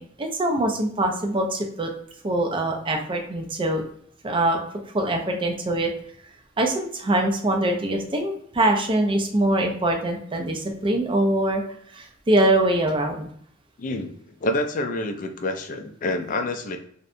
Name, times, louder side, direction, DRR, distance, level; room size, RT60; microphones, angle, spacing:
voice 1, 0.0-1.9 2.2-3.8 4.2-4.6 4.9-5.9 6.6-11.6 11.9-13.3, right 1 dB, 25° right, 2 dB, 0.4 m, -23 dB
voice 2, 13.8-14.1 14.4-16.8, left 2 dB, 45° left, 6 dB, 0.3 m, -27 dB
2.7 x 2.1 x 2.5 m, 0.64 s
head